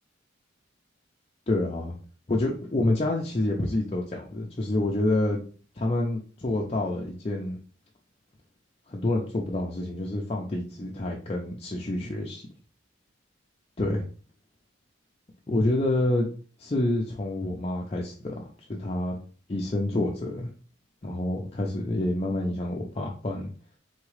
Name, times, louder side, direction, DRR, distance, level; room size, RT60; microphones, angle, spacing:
voice 1, 1.5-2.0 2.3-5.4 5.8-7.6 8.9-12.5 13.8-14.0 15.5-16.3 16.6-18.3 18.7-19.2 19.5-20.5 21.0-23.5, left 1 dB, 30° left, -1 dB, 0.5 m, -28 dB
4.0 x 3.6 x 3.2 m, 0.41 s
head